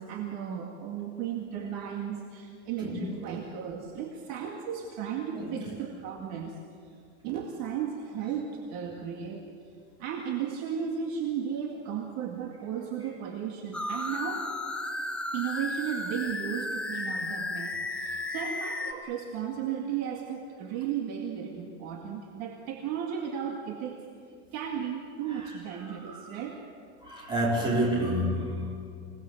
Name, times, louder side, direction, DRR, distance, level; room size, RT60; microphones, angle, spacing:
voice 1, 0.0-6.6 7.2-9.5 10.0-14.5 15.3-24.0 24.5-26.6, right 8 dB, 45° right, 1 dB, 2.1 m, -35 dB
voice 2, 5.3-5.7 25.3-25.5 25.8-26.4 27.0-28.7, right 1 dB, 15° right, -4 dB, 4.9 m, -29 dB
sound 1, 13.7-18.9, left 2 dB, 5° left, 0.8 m, -34 dB
26.5 x 18.5 x 7.9 m, 2.2 s
supercardioid pair, 175°, 35 cm